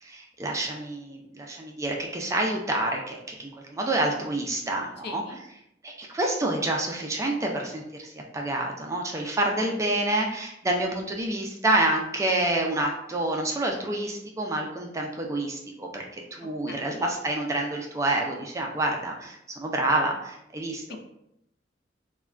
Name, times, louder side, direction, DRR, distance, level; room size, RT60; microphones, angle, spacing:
voice 1, 0.0-5.2 5.8-21.0, right 1 dB, 15° right, 1 dB, 0.3 m, -28 dB
voice 2, 5.0-5.4 16.4-17.0 20.9-21.0, left 4 dB, 55° left, 4 dB, 0.4 m, -41 dB
3.5 x 2.1 x 2.3 m, 0.81 s
head